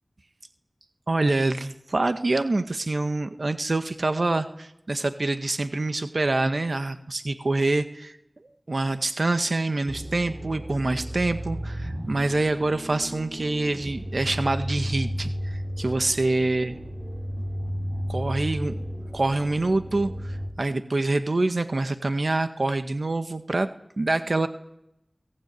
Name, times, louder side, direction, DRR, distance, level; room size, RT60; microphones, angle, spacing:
voice 1, 1.1-8.2 8.7-16.8 18.1-18.7 19.1-23.7 24.0-24.5, right 2 dB, 65° right, 9 dB, 1.7 m, -26 dB
sound 1, 9.9-20.5, equal, 35° right, 3.6 m, -33 dB
23.5 x 18.5 x 9.8 m, 0.80 s
wide cardioid pair, 50°, 0 cm